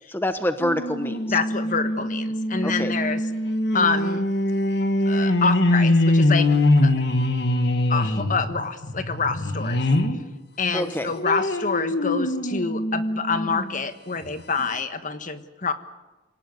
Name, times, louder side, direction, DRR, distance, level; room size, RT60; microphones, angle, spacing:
voice 1, 0.1-1.4 2.6-2.9 10.7-11.1, left 1 dB, 10° left, 9 dB, 1.0 m, -26 dB
sound 1, 0.6-10.2 10.6-13.7 14.2-14.3 14.6-14.7, left 1 dB, 60° left, 2.1 m, -23 dB
voice 2, 1.3-3.2 3.7-4.3 5.1-6.5 6.8-6.9 7.9-9.8 10.6-15.7, left 4 dB, 40° left, 10 dB, 1.4 m, -27 dB
27.0 x 18.5 x 9.6 m, 1.1 s
head